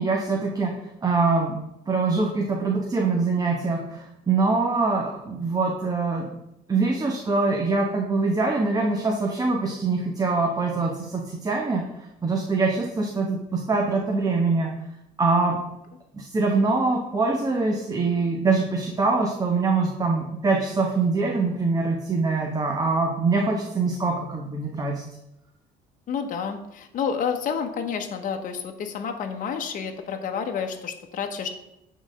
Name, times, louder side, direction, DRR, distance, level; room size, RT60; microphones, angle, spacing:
voice 1, 0.0-1.6 1.9-6.3 6.7-14.7 15.2-15.6 16.1-25.0, right 3 dB, 20° right, 1 dB, 1.1 m, -24 dB
voice 2, 26.1-31.5, left 6 dB, 50° left, 4 dB, 1.0 m, -29 dB
8.9 x 4.1 x 6.3 m, 0.85 s
cardioid pair, 110°, 17 cm